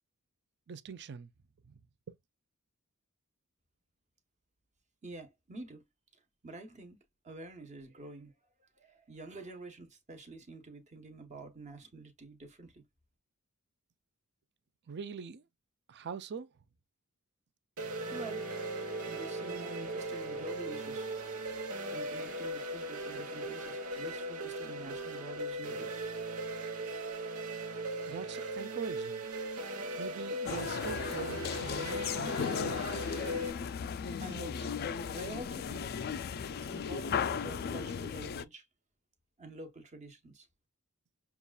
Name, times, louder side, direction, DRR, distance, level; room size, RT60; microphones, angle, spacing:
voice 1, 0.7-1.3 1.7-1.8 2.1-2.2 14.9-15.4 15.9-16.5 28.1-29.3 30.0-32.9, right 6 dB, 50° right, 0.5 m, -43 dB
voice 2, 5.0-5.8 6.4-7.0 7.2-8.3 8.6-12.8 18.1-18.4 19.0-21.1 21.9-25.9 33.6-33.8 34.2-34.8 35.1-35.9 36.5-38.7 39.4-40.5, right 1 dB, 30° right, 1.0 m, -47 dB
sound 1, 17.8-33.5, right 1 dB, 70° right, 1.1 m, -38 dB
Bowed string instrument, 18.0-24.7, right 2 dB, ahead, 0.7 m, -51 dB
sound 2, 30.5-38.4, left 6 dB, 45° left, 0.3 m, -36 dB
6.6 x 2.4 x 2.3 m
head